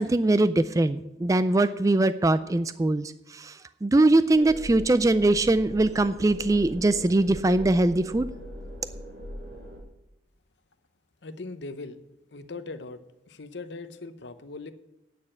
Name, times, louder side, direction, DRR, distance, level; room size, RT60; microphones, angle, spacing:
voice 1, 0.0-8.3, right 2 dB, 15° right, 13 dB, 0.3 m, -22 dB
sound 1, 4.3-9.8, equal, 60° right, 3.0 m, -41 dB
voice 2, 11.2-12.0 12.3-13.0 13.3-14.7, left 3 dB, 65° left, 10 dB, 0.8 m, -39 dB
9.5 x 6.7 x 8.6 m, 0.89 s
head